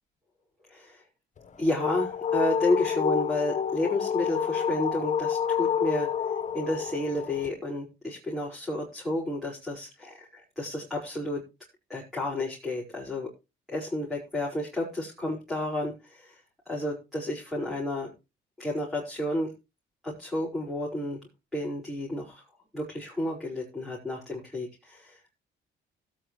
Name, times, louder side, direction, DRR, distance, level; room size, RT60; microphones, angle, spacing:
voice 1, 0.7-1.0 1.6-6.1 6.5-11.4 11.9-13.3 13.7-16.4 16.7-18.1 18.6-19.5 20.0-21.2 21.5-22.4 22.7-25.2, left 1 dB, ahead, -7 dB, 5.3 m, -31 dB
sound 1, 1.4-7.5, left 8 dB, 40° left, 1.2 m, -28 dB
17.5 x 9.1 x 3.2 m, 0.27 s
cardioid pair, 90°, 20 cm